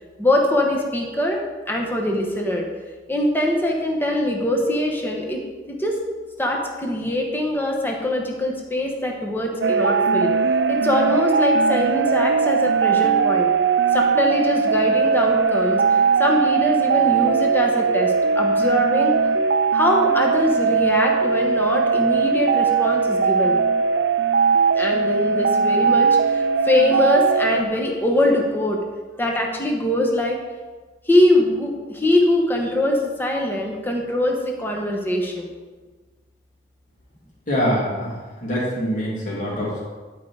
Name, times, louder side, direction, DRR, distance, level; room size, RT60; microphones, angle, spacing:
voice 1, 0.2-1.4 1.7-2.7 3.1-5.4 5.7-5.9 6.4-10.3 10.7-13.5 13.9-15.8 16.2-19.1 19.7-23.6 24.7-28.8 29.2-30.4 31.1-35.5, left 1 dB, 10° left, 0 dB, 1.1 m, -22 dB
sound 1, 9.6-27.6, right 5 dB, 75° right, 0.4 m, -19 dB
voice 2, 37.5-38.1 38.4-39.8, equal, 45° left, -6 dB, 3.1 m, -24 dB
11.5 x 4.9 x 4.7 m, 1.4 s
head